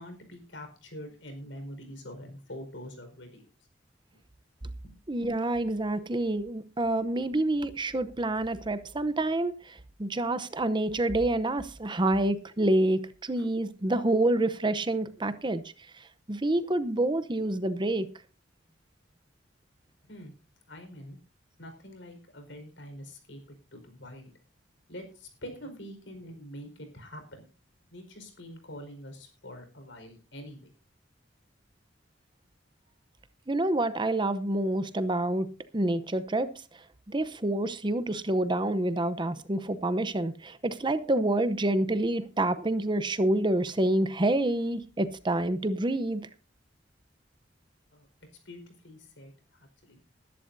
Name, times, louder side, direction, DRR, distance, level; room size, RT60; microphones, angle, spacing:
voice 1, 0.0-3.5 4.8-4.9 13.4-13.5 20.0-20.3 20.7-21.2 21.6-23.4 23.7-24.3 24.9-27.4 27.9-30.7 47.9-48.1 48.4-50.0, equal, 85° left, 4.7 m, -45 dB
voice 2, 5.1-15.6 16.3-18.1 33.5-35.5 35.7-36.5 37.1-46.2, right 1 dB, 25° right, 0.8 m, -27 dB
20.5 x 11.0 x 2.7 m
head